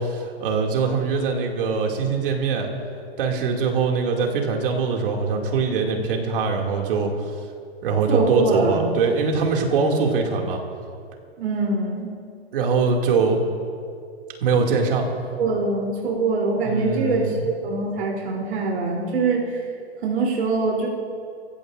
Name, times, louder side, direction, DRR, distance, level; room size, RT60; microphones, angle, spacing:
voice 1, 0.0-2.7 3.2-7.1 7.8-10.6 12.5-13.4 14.4-15.1 16.6-17.4, right 4 dB, 55° right, 1 dB, 2.6 m, -22 dB
voice 2, 8.1-8.9 11.4-12.1 15.4-19.5 20.0-20.9, right 3 dB, 75° right, -3 dB, 3.6 m, -23 dB
25.0 x 16.0 x 2.6 m, 2.4 s
hypercardioid pair, 160°, 33 cm